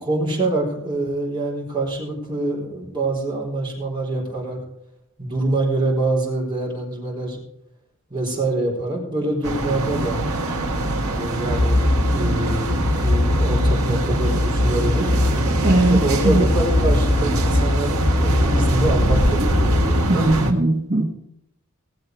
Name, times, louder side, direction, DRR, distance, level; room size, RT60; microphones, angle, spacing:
voice 1, 0.0-4.6 5.2-7.4 8.1-10.2 11.1-15.1 15.8-20.3, right 2 dB, 20° right, -4 dB, 4.1 m, -25 dB
sound 1, 9.4-20.5, right 2 dB, 85° right, 1.6 m, -24 dB
sound 2, 11.5-20.0, left 1 dB, 90° left, 2.0 m, -21 dB
voice 2, 15.6-16.4 20.1-21.0, right 2 dB, 45° right, -2 dB, 1.5 m, -19 dB
17.5 x 7.7 x 4.7 m, 0.76 s
head